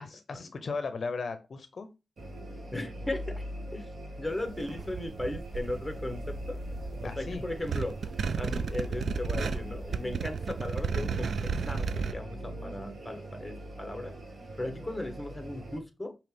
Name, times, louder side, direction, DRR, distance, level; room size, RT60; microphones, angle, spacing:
voice 1, 0.0-1.9 7.0-7.5, left 4 dB, 55° left, 0.6 m, -36 dB
sound 1, 2.2-15.8, equal, 50° right, 1.3 m, -41 dB
voice 2, 2.7-3.4 3.7-3.9 4.2-6.6 7.0-8.0 8.3-14.1 14.6-16.2, left 1 dB, 10° left, 1.0 m, -37 dB
sound 2, 4.3-12.1, right 5 dB, 70° right, 0.3 m, -34 dB
5.2 x 2.9 x 3.2 m
wide cardioid pair, 105°, 0 cm